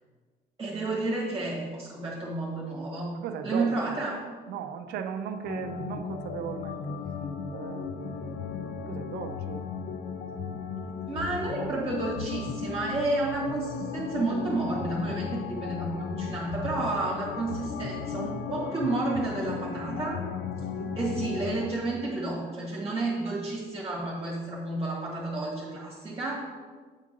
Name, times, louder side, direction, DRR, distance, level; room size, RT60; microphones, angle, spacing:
voice 1, 0.6-4.2 11.1-20.2 20.9-26.4, right 2 dB, 20° right, -3 dB, 1.6 m, -31 dB
voice 2, 3.2-3.7 4.5-6.9 7.5-8.5 8.9-9.7 20.5-20.9, right 8 dB, 75° right, 7 dB, 0.6 m, -37 dB
sound 1, 5.4-21.7, left 6 dB, 60° left, 0.7 m, -35 dB
8.1 x 3.7 x 5.2 m, 1.5 s
cardioid pair, 110°, 17 cm